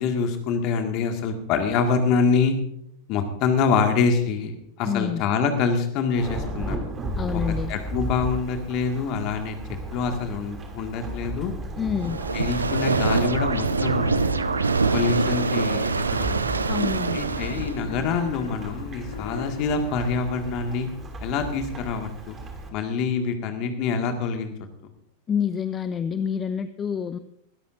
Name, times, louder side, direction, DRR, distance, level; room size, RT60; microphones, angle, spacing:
voice 1, 0.0-2.6 3.1-4.5 4.8-6.8 7.3-7.4 7.7-9.6 9.9-11.5 12.3-14.3 14.9-16.6 17.1-20.9 21.2-22.4 22.7-24.5, left 5 dB, 40° left, 5 dB, 2.0 m, -25 dB
voice 2, 4.8-5.2 7.2-7.7 11.8-12.2 16.7-17.2 25.3-27.2, left 7 dB, 25° left, 13 dB, 0.5 m, -27 dB
Thunderstorm / Rain, 6.2-22.7, right 1 dB, 20° right, 2.9 m, -35 dB
sound 1, 12.0-17.8, right 4 dB, 75° right, 0.6 m, -24 dB
Wild animals, 13.6-16.1 17.6-20.1, left 6 dB, 65° left, 1.0 m, -38 dB
20.5 x 13.0 x 2.7 m, 0.72 s
figure-of-eight pair, 90°, 0 cm